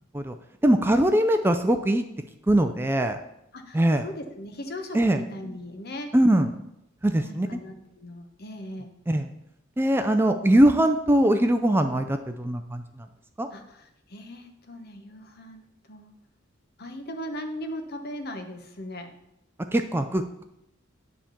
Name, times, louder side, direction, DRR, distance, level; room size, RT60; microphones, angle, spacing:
voice 1, 0.6-2.0 2.5-3.2 3.7-4.0 4.9-5.2 6.1-6.5 7.0-7.5 9.1-9.3 9.8-13.1 13.4-13.5 19.7-20.4, right 1 dB, 10° right, 7 dB, 0.4 m, -21 dB
voice 2, 3.5-6.1 7.2-8.9 13.5-16.1 16.8-19.1, left 1 dB, 55° left, 6 dB, 1.1 m, -38 dB
10.0 x 3.6 x 7.0 m, 0.83 s
head